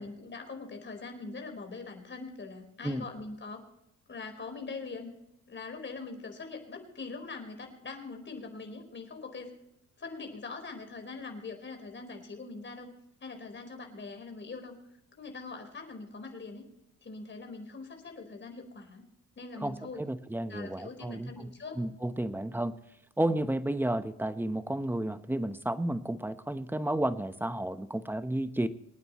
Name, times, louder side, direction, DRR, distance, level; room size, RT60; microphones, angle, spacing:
voice 1, 0.0-3.6 4.1-5.1 5.5-9.5 10.0-12.9 13.2-14.7 15.1-16.6 17.0-19.0 19.4-20.0 20.5-21.8, left 3 dB, 40° left, 4 dB, 4.6 m, -42 dB
voice 2, 19.6-21.5 21.8-22.7 23.2-28.7, right 1 dB, 5° right, 11 dB, 1.0 m, -32 dB
27.0 x 9.4 x 3.1 m, 0.85 s
cardioid pair, 90°, 30 cm